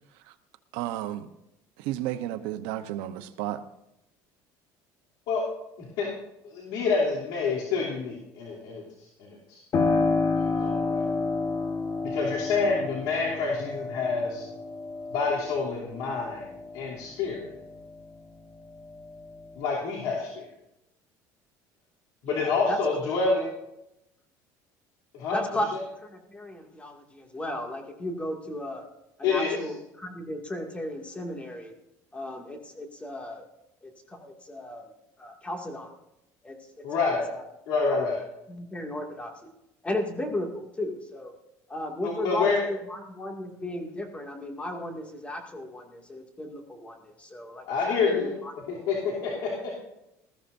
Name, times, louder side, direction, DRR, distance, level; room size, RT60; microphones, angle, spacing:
voice 1, 0.7-1.3 1.8-3.6, right 13 dB, 85° right, 8 dB, 0.9 m, -32 dB
voice 2, 5.8-6.1 6.4-8.8 9.2-9.6 10.3-11.0 12.0-14.4 15.1-16.5 16.7-17.5 19.6-20.5 22.2-23.5 25.1-25.4 29.2-29.6 36.8-37.3 37.7-38.2 42.0-42.6 47.7-48.3 48.7-49.7, left 4 dB, 80° left, -5 dB, 3.1 m, -27 dB
Piano, 9.7-18.2 18.6-19.6, left 4 dB, 45° left, 1.5 m, -30 dB
voice 3, 22.2-22.8 25.3-25.7 26.0-28.9 29.2-31.7 32.1-33.5 33.8-34.9 35.2-35.9 36.4-37.4 37.9-38.0 38.5-39.5 39.8-41.3 41.7-48.5, left 1 dB, 15° left, 2 dB, 2.3 m, -35 dB
20.0 x 14.0 x 2.7 m, 0.87 s
cardioid pair, 120°, 8 cm